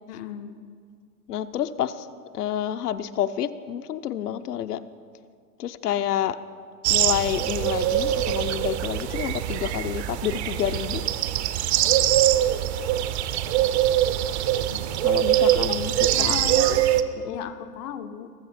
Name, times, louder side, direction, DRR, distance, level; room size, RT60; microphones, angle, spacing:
voice 1, 0.1-0.6 14.7-14.8 15.5-15.9 16.1-16.8 17.3-18.3, left 9 dB, 25° left, 8 dB, 0.4 m, -35 dB
voice 2, 1.3-1.9 2.3-4.8 5.6-6.4 6.9-11.0 15.0-15.9 16.2-16.4 17.2-17.4, left 10 dB, 70° left, 11 dB, 0.7 m, -28 dB
sound 1, 6.8-17.0, right 12 dB, 45° right, 0.7 m, -23 dB
20.0 x 6.9 x 4.3 m, 2.1 s
hypercardioid pair, 110°, 48 cm